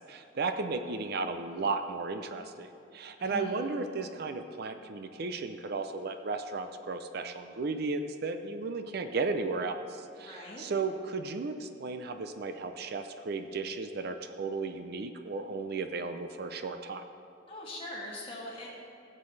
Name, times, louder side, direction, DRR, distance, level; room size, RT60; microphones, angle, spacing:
voice 1, 0.1-2.7 2.9-17.0, right 3 dB, 60° right, 8 dB, 0.5 m, -34 dB
voice 2, 3.2-3.7 10.2-10.7 17.5-18.7, left 1 dB, 30° left, -5 dB, 2.4 m, -41 dB
15.5 x 7.6 x 3.3 m, 2.5 s
head